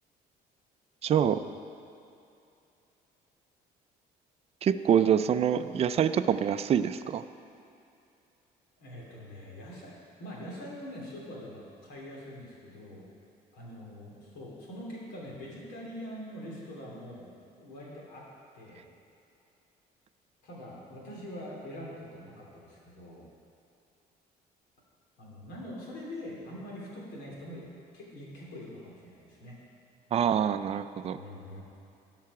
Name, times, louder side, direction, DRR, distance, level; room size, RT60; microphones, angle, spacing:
voice 1, 1.0-1.4 4.6-7.2 30.1-31.2, right 8 dB, 35° right, 10 dB, 0.4 m, -25 dB
voice 2, 8.8-9.9 10.2-13.1 13.5-17.3 17.6-18.2 18.5-18.9 20.4-23.3 25.2-27.6 27.9-29.6 31.1-31.6, left 1 dB, 85° left, -4 dB, 2.9 m, -43 dB
16.0 x 5.7 x 4.8 m, 2.7 s
cardioid pair, 110°, 17 cm